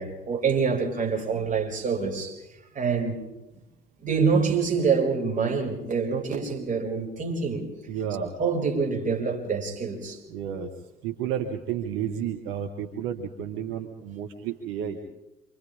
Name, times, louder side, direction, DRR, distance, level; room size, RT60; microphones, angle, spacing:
voice 1, 0.0-2.4 2.7-3.2 4.0-7.6 8.4-10.2, right 5 dB, 40° right, 6.3 m, -26 dB
voice 2, 7.9-8.3 10.3-10.7 11.0-15.0, right 9 dB, 75° right, 1.9 m, -31 dB
28.0 x 26.5 x 3.7 m
hypercardioid pair, 60°, 21 cm